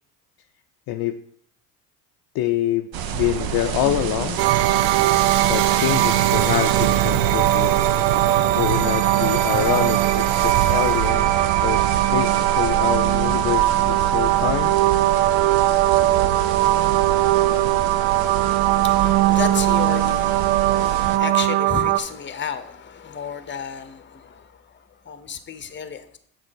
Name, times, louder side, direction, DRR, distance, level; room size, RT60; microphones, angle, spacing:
voice 1, 0.9-1.2 2.3-4.4 5.5-7.7 8.6-14.8, left 13 dB, 50° left, 7 dB, 0.6 m, -26 dB
sound 1, 2.9-21.2, right 9 dB, 50° right, 0.8 m, -28 dB
sound 2, 4.4-22.0, right 14 dB, 80° right, 0.6 m, -20 dB
voice 2, 17.8-26.2, left 7 dB, 25° left, 11 dB, 0.9 m, -33 dB
7.5 x 4.0 x 6.2 m, 0.65 s
hypercardioid pair, 65°, 48 cm